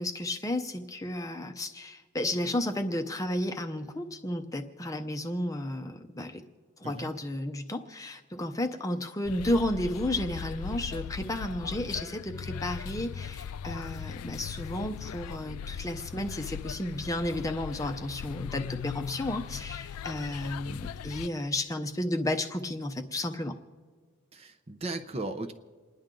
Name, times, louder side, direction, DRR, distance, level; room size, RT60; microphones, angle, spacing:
voice 1, 0.0-6.4 6.8-23.5, left 1 dB, 15° left, 5 dB, 0.6 m, -32 dB
sound 1, 9.2-21.3, left 8 dB, 85° left, 0.3 m, -39 dB
voice 2, 24.3-25.5, right 2 dB, 25° right, 6 dB, 0.6 m, -36 dB
28.5 x 10.5 x 3.8 m, 1.5 s
head